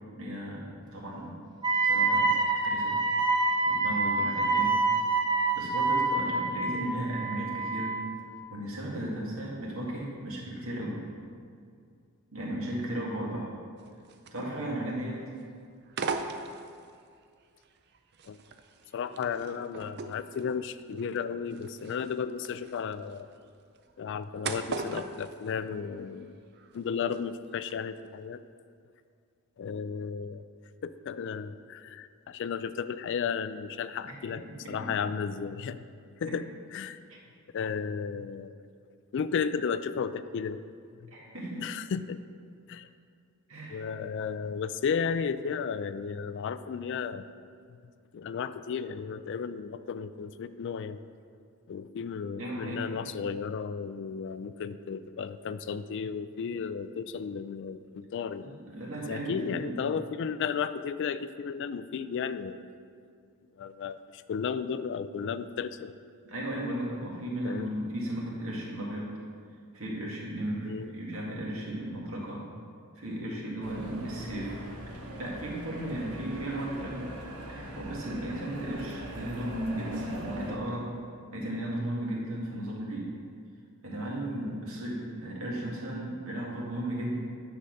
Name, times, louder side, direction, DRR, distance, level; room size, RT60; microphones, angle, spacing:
voice 1, 0.2-1.4 1.8-2.3 2.6-2.9 3.7-4.8 5.5-8.0 8.5-11.0 12.3-13.5 14.3-15.2 34.8-34.9 36.2-36.3 37.1-37.2 41.1-41.6 43.5-43.8 52.4-53.1 58.4-59.8 66.2-69.2 69.7-72.4 73.0-74.6 75.2-77.1 77.5-80.9 81.3-83.1 83.8-87.2, right 1 dB, 65° right, -4 dB, 2.1 m, -35 dB
Wind instrument woodwind instrument, 1.6-8.1, right 3 dB, 20° right, 0.8 m, -27 dB
sound 1, 13.8-14.8 15.1-15.4 15.9-17.0 17.6-26.3 26.5-27.2 27.5-27.7, right 4 dB, 50° right, 0.5 m, -39 dB
voice 2, 18.9-23.3 24.0-26.4 26.7-28.4 29.6-30.4 30.8-35.8 36.2-37.0 37.5-38.5 39.1-40.6 41.0-41.1 41.6-42.2 42.7-42.9 43.7-47.3 48.1-51.0 51.7-58.5 59.1-62.6 63.6-66.0 67.4-67.7 70.6-70.9, left 6 dB, 55° left, 13 dB, 0.3 m, -34 dB
sound 2, 73.6-80.6, equal, 90° right, 1.2 m, -41 dB
9.6 x 4.2 x 6.5 m, 2.2 s
head